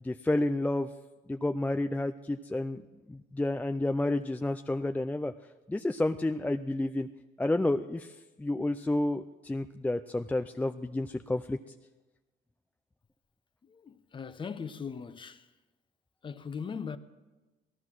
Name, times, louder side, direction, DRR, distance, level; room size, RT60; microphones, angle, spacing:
voice 1, 0.0-0.9 1.3-2.8 3.1-5.3 5.7-7.1 7.4-11.6, left 2 dB, 10° left, 0.4 m, -30 dB
voice 2, 13.6-15.5 16.2-17.0, left 6 dB, 30° left, 1.0 m, -39 dB
17.5 x 13.5 x 6.1 m
cardioid pair, 110°, 17 cm